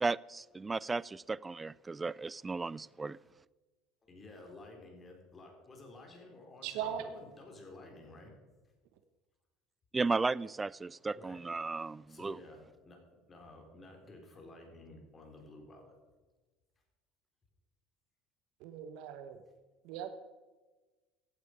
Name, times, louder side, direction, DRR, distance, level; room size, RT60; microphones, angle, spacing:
voice 1, 0.0-3.2 9.9-12.4, right 3 dB, 20° right, 22 dB, 0.3 m, -35 dB
voice 2, 4.0-8.3 11.1-11.4 11.7-16.0, left 2 dB, 30° left, 1 dB, 3.8 m, -53 dB
voice 3, 6.6-7.1 18.6-19.4 19.8-20.1, right 9 dB, 70° right, 9 dB, 1.0 m, -39 dB
15.0 x 8.5 x 5.0 m, 1.3 s
supercardioid pair, 95°, 0 cm